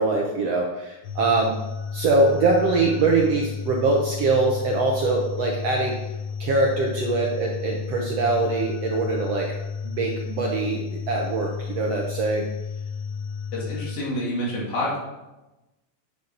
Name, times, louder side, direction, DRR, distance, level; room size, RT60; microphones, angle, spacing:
voice 1, 0.0-1.5 1.9-6.0 6.4-9.5 9.8-12.4, right 3 dB, 70° right, -1 dB, 1.5 m, -23 dB
sound 1, 1.0-13.9, left 6 dB, 65° left, 1.7 m, -32 dB
voice 2, 13.5-15.0, left 1 dB, 90° left, -5 dB, 4.7 m, -28 dB
10.0 x 7.2 x 3.9 m, 1.0 s
omnidirectional pair, 4.0 m